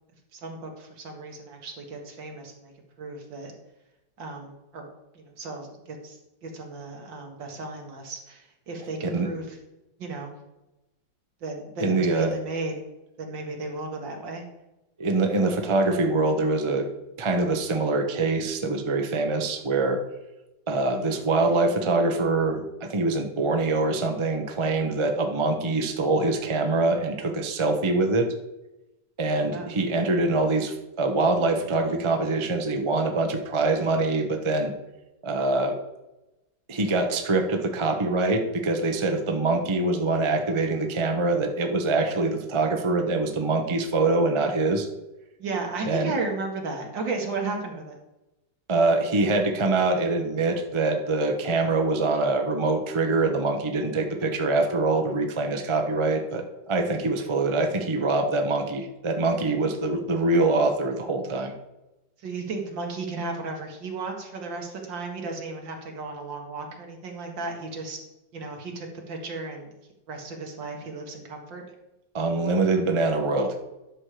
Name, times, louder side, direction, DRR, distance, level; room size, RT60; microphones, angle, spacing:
voice 1, 0.3-2.7 3.0-3.6 4.2-4.9 5.1-9.6 10.0-10.3 11.4-12.7 13.2-14.4 29.5-29.7 45.4-48.0 62.2-68.0 68.3-69.7 70.1-71.6, right 3 dB, 70° right, 2 dB, 2.3 m, -34 dB
voice 2, 11.8-12.3 15.0-16.9 17.2-20.0 20.7-28.3 29.2-34.7 35.2-35.8 36.7-44.9 45.9-46.1 48.7-61.5 72.1-73.6, right 3 dB, 25° right, 3 dB, 0.6 m, -24 dB
11.0 x 6.3 x 4.9 m, 0.99 s
omnidirectional pair, 2.1 m